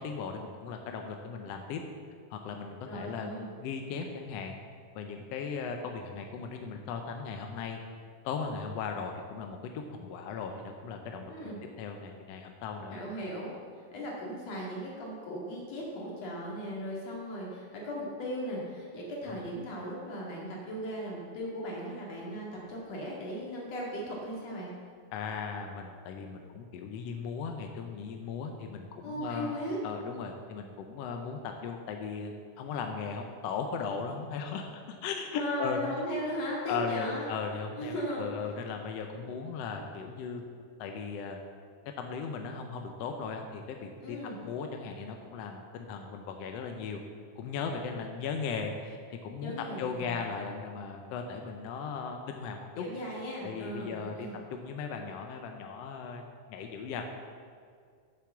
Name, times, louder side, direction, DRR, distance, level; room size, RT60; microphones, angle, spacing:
voice 1, 0.0-1.8 2.3-3.3 3.6-4.6 4.9-7.8 8.2-13.2 25.1-29.6 29.8-35.8 36.7-40.4 40.8-41.4 42.0-47.0 47.4-52.8 53.4-54.3 54.6-57.2, left 5 dB, 75° left, 4 dB, 1.5 m, -37 dB
voice 2, 2.8-3.5 11.3-11.6 12.9-13.5 13.9-24.7 29.0-29.8 35.3-37.3 37.8-38.5 44.0-44.4 49.4-50.2 52.8-54.4, equal, 60° left, -3 dB, 3.2 m, -37 dB
8.1 x 7.0 x 7.0 m, 2.1 s
omnidirectional pair, 3.5 m